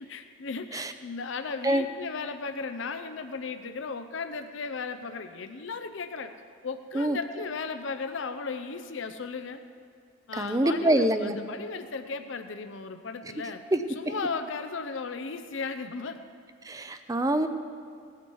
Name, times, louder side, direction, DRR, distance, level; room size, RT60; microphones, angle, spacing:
voice 1, 0.1-6.3 6.6-9.6 10.3-13.6 13.9-16.2, left 4 dB, 70° left, 8 dB, 0.6 m, -36 dB
voice 2, 10.4-11.4 13.7-13.8 16.6-17.5, right 1 dB, 15° right, 9 dB, 0.5 m, -25 dB
18.5 x 8.3 x 4.7 m, 2.3 s
head